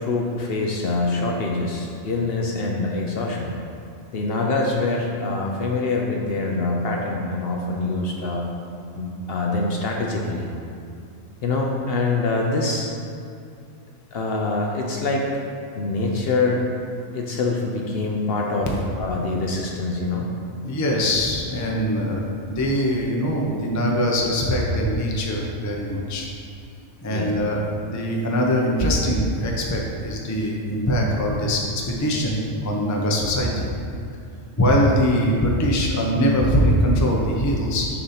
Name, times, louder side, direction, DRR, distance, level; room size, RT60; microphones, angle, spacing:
voice 1, 0.0-3.5 4.1-8.4 9.0-10.5 11.4-12.9 14.1-15.3 15.7-16.6 17.1-18.7 19.0-20.3 27.1-27.3, left 3 dB, 60° left, 0 dB, 0.7 m, -24 dB
voice 2, 20.6-26.3 27.0-27.6 27.9-33.7 34.6-37.9, equal, 20° left, -1 dB, 0.4 m, -22 dB
6.6 x 2.8 x 5.6 m, 2.5 s
omnidirectional pair, 1.3 m